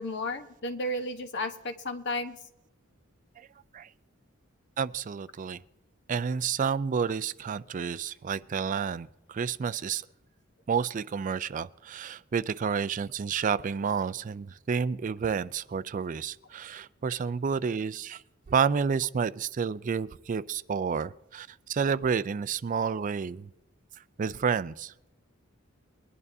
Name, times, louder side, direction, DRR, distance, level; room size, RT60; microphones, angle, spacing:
voice 1, 0.0-2.4, left 1 dB, 60° left, 7 dB, 1.1 m, -33 dB
voice 2, 4.8-5.6 6.1-10.0 10.7-18.2 18.5-23.5 24.2-24.9, right 6 dB, 40° right, 16 dB, 0.3 m, -30 dB
22.0 x 11.0 x 2.7 m, 0.89 s
head